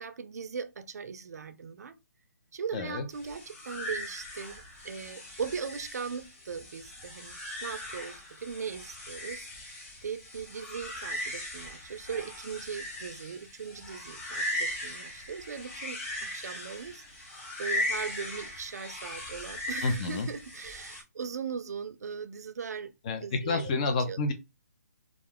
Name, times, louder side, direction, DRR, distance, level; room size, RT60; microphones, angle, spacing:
voice 1, 0.0-1.9 2.5-9.5 10.0-17.3 17.6-22.9 23.2-23.7 24.1-24.2, right 6 dB, 70° right, 0.4 m, -39 dB
voice 2, 2.7-3.0 19.8-20.3 23.1-24.3, left 3 dB, 25° left, 0.4 m, -29 dB
sound 1, 3.1-21.0, left 1 dB, 45° left, 1.0 m, -39 dB
2.4 x 2.2 x 3.4 m
hypercardioid pair, 160°, 9 cm